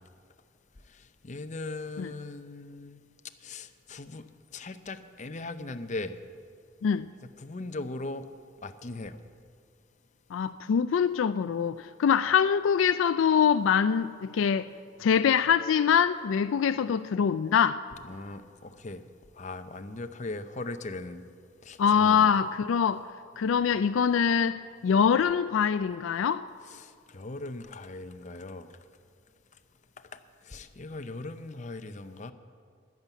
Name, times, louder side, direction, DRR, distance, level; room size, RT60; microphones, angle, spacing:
voice 1, 0.9-3.0 3.4-4.3 4.5-6.2 7.2-8.3 8.6-9.2 18.0-19.0 19.4-21.2 21.6-22.3 26.6-28.7 30.1-30.2 30.4-32.3, left 2 dB, 35° left, 0.7 m, -39 dB
voice 2, 10.3-14.7 15.0-17.8 21.8-23.0 23.4-26.4, left 7 dB, 75° left, 0.3 m, -24 dB
11.0 x 10.5 x 8.2 m
head